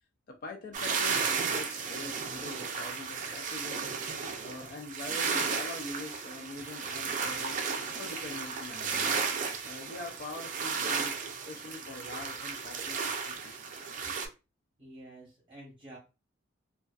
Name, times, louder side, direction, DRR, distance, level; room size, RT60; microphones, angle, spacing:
voice 1, 0.3-3.9 4.2-7.6 8.0-9.1 9.6-13.6, left 2 dB, 50° left, 0.4 m, -44 dB
sound 1, 0.7-14.3, right 5 dB, 40° right, 0.4 m, -34 dB
voice 2, 14.8-16.0, right 1 dB, 25° right, 0.8 m, -49 dB
2.4 x 2.2 x 2.2 m
head